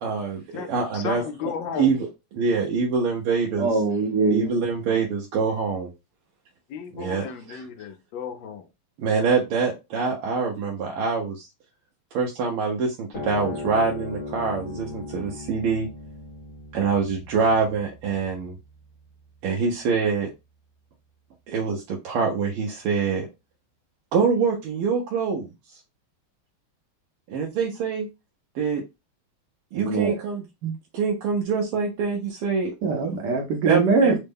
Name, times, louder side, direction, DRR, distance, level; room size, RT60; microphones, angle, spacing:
voice 1, 0.0-1.2 1.8-2.0 2.3-3.7 4.3-5.9 6.9-7.6 9.0-11.5 12.1-15.9 16.7-18.5 19.4-20.3 21.5-23.3 24.1-25.5 27.3-28.1 28.5-28.8 29.7-30.4 30.9-32.7 33.7-34.2, right 5 dB, 90° right, 1.6 m, -25 dB
voice 2, 0.5-1.9 6.7-8.7, left 6 dB, 70° left, 1.3 m, -34 dB
voice 3, 3.6-4.5 29.8-30.2 30.6-30.7 32.8-34.2, right 4 dB, 65° right, 1.1 m, -22 dB
sound 1, 13.1-19.8, left 2 dB, 50° left, 1.2 m, -38 dB
4.1 x 2.1 x 3.4 m
omnidirectional pair, 2.4 m